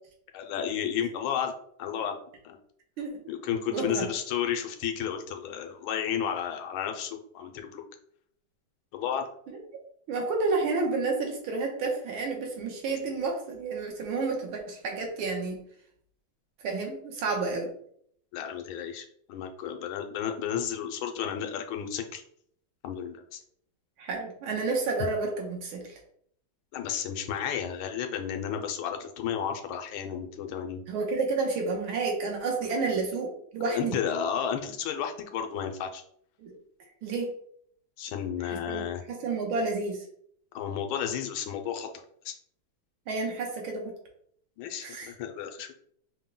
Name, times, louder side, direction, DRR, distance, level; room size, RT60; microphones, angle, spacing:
voice 1, 0.3-1.5 1.8-2.2 2.4-2.6 3.3-7.8 8.9-9.2 18.3-22.2 22.8-23.4 26.7-30.8 33.7-36.0 38.0-39.0 40.5-41.9 42.2-42.3 44.6-45.7, left 8 dB, 90° left, 4 dB, 1.4 m, -32 dB
voice 2, 3.7-4.1 9.5-9.6 10.1-15.6 16.6-17.7 24.0-26.0 30.9-34.0 36.4-36.5 37.0-37.3 38.4-38.8 39.1-40.0 43.1-43.9 44.8-45.1, right 3 dB, 85° right, 1 dB, 1.8 m, -30 dB
5.5 x 2.2 x 3.7 m, 0.66 s
omnidirectional pair, 2.2 m